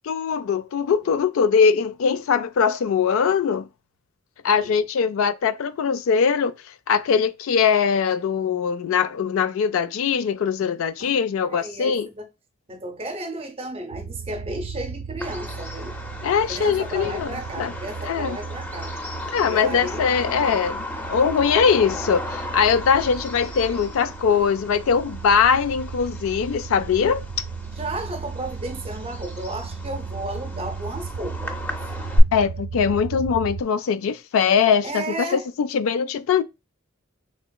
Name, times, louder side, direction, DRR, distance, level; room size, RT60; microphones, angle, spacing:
voice 1, 0.0-3.7 4.4-6.5 6.9-12.1 16.2-17.7 18.1-18.4 19.3-27.2 32.3-36.4, left 6 dB, 75° left, 0.3 m, -21 dB
voice 2, 4.5-4.9 11.0-12.3 12.7-16.0 16.5-19.0 19.4-20.1 27.7-31.6 34.8-35.5, right 1 dB, 30° right, 0.6 m, -33 dB
sound 1, 13.9-33.6, right 5 dB, 85° right, 0.3 m, -36 dB
Bird vocalization bird call bird song, 15.2-32.2, left 1 dB, 10° left, 0.5 m, -34 dB
3.3 x 2.9 x 2.2 m
head